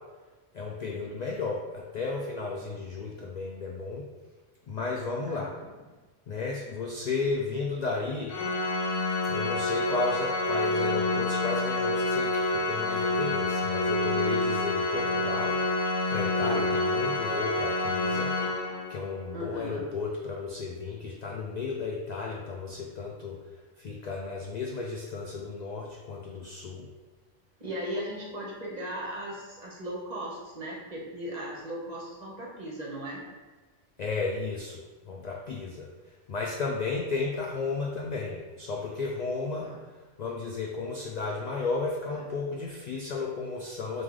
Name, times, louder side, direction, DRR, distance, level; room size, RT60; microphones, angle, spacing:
voice 1, 0.5-4.1 4.7-5.5 6.3-8.4 9.3-18.4 18.9-23.4 23.8-26.9 34.0-35.9 36.3-39.7 40.2-44.0, left 4 dB, 65° left, -1 dB, 0.4 m, -33 dB
voice 2, 5.3-5.7 16.4-16.6 19.3-19.8 27.6-33.2 39.6-39.8 42.1-42.2, equal, 40° right, -4 dB, 0.8 m, -37 dB
Organ, 8.3-19.1, left 2 dB, 85° left, 0.9 m, -28 dB
3.7 x 2.5 x 4.6 m, 1.3 s
omnidirectional pair, 1.2 m